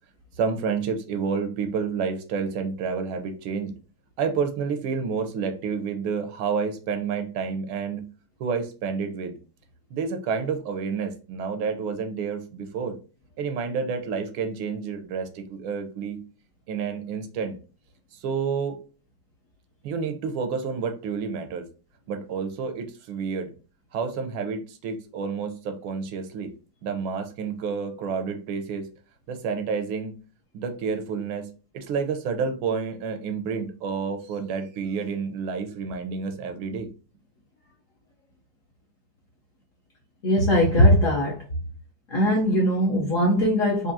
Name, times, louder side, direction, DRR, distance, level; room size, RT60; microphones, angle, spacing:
voice 1, 0.4-3.7 4.2-8.0 8.4-9.4 9.9-13.0 13.4-16.2 16.7-17.6 18.2-18.8 19.8-21.7 22.1-23.5 23.9-26.5 26.8-28.9 29.3-30.2 30.5-31.5 31.7-36.9, right 5 dB, 90° right, 1.6 m, -29 dB
voice 2, 40.2-41.4 42.1-43.9, equal, 60° left, 0.8 m, -20 dB
4.8 x 2.6 x 2.6 m
omnidirectional pair, 2.2 m